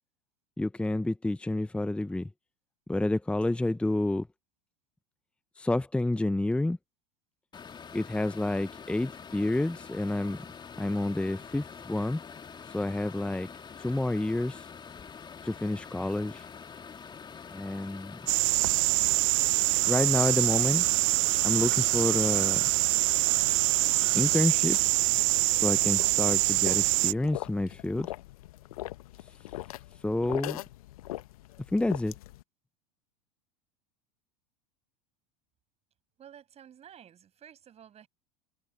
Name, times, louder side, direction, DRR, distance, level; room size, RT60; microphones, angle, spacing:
voice 1, 0.6-2.3 2.9-4.3 5.6-6.8 7.9-10.4 10.8-12.2 12.7-13.5 13.8-14.7 15.4-16.5 17.5-18.2 19.9-20.8 21.4-22.6 24.1-24.8 25.5-28.1 30.0-30.6 31.7-32.1, left 2 dB, 5° left, 1.0 m, -29 dB
sound 1, 7.5-24.4, left 6 dB, 20° left, 2.8 m, -46 dB
sound 2, 18.3-27.1, right 30 dB, 55° right, 0.8 m, -25 dB
sound 3, 24.7-32.4, left 16 dB, 65° left, 1.3 m, -41 dB
voice 2, 36.2-38.1, right 9 dB, 30° right, 7.5 m, -52 dB
figure-of-eight pair, 80°, 20 cm